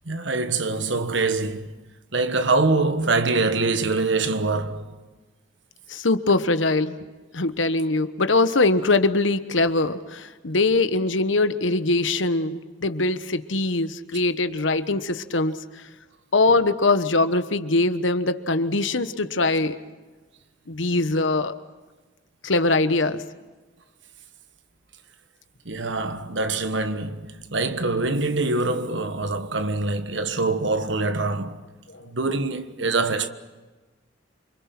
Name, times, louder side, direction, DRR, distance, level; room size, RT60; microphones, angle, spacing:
voice 1, 0.0-1.7 2.1-4.9 25.6-31.6 32.0-33.3, right 3 dB, 70° right, 1.4 m, -24 dB
voice 2, 5.9-7.0 7.3-15.6 16.3-19.8 20.7-21.5 22.4-23.2 31.9-32.1, left 2 dB, 85° left, 1.3 m, -22 dB
28.0 x 26.0 x 6.1 m
head